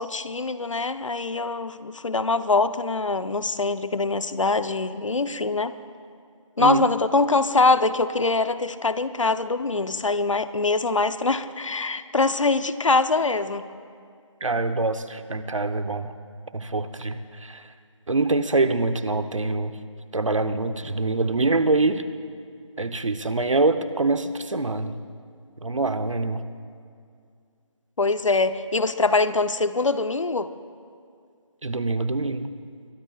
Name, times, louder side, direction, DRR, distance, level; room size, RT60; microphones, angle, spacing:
voice 1, 0.0-5.7 6.6-13.7 28.0-30.5, left 3 dB, 70° left, 12 dB, 0.8 m, -23 dB
voice 2, 14.4-16.1 16.5-17.7 18.1-19.7 20.1-22.0 22.8-25.0 25.6-26.4 31.6-32.5, right 3 dB, 70° right, 10 dB, 0.9 m, -24 dB
23.5 x 22.5 x 2.4 m, 2.3 s
figure-of-eight pair, 165°, 17 cm